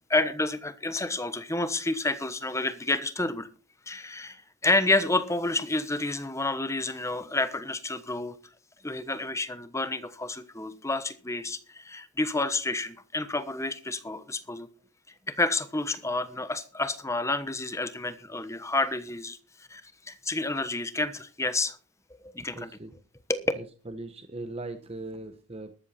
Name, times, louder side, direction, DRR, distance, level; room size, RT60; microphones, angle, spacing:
voice 1, 0.1-3.5 3.9-8.4 8.8-14.7 15.3-19.4 19.7-19.8 20.1-21.8 22.2-22.7 23.3-23.5, left 2 dB, 15° left, 1.1 m, -29 dB
voice 2, 22.5-22.9 23.6-25.8, right 2 dB, 25° right, 0.9 m, -39 dB
13.5 x 12.5 x 4.3 m
head